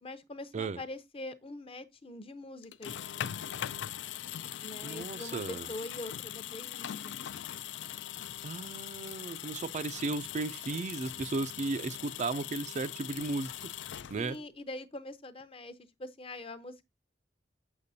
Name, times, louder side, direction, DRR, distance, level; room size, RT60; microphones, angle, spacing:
voice 1, 0.0-2.9 4.6-7.2 14.2-16.8, left 2 dB, 30° left, 0.7 m, -43 dB
sound 1, 2.6-14.5, left 11 dB, 70° left, 0.4 m, -41 dB
voice 2, 4.8-5.7 8.1-13.7 14.1-14.4, right 3 dB, 40° right, 0.4 m, -35 dB
7.4 x 6.7 x 2.7 m
head